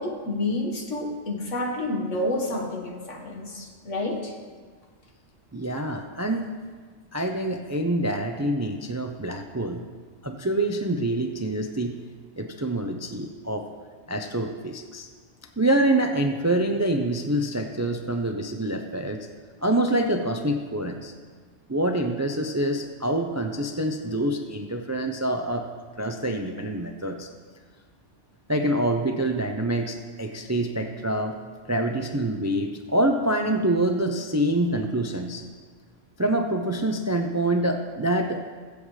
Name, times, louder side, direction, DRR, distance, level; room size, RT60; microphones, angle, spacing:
voice 1, 0.0-4.3, left 2 dB, 70° left, 1 dB, 1.9 m, -29 dB
voice 2, 5.5-6.5 7.1-9.8 10.2-12.0 12.4-13.7 14.1-15.1 15.6-19.3 19.6-21.1 21.7-25.6 26.0-27.3 28.5-31.4 31.7-35.4 36.2-38.4, right 1 dB, 20° right, 4 dB, 0.4 m, -26 dB
22.5 x 7.7 x 3.2 m, 1.5 s
omnidirectional pair, 1.3 m